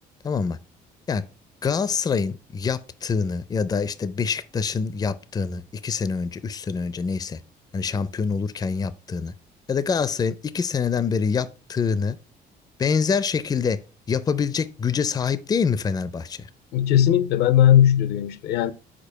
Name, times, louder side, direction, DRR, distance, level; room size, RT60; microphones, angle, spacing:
voice 1, 0.2-0.6 1.1-1.2 1.6-7.4 7.7-9.3 9.7-12.2 12.8-13.8 14.1-16.5, left 5 dB, 25° left, 0.4 m, -25 dB
voice 2, 16.7-18.7, left 11 dB, 75° left, 0.6 m, -18 dB
5.1 x 4.1 x 5.4 m
cardioid pair, 110°, 17 cm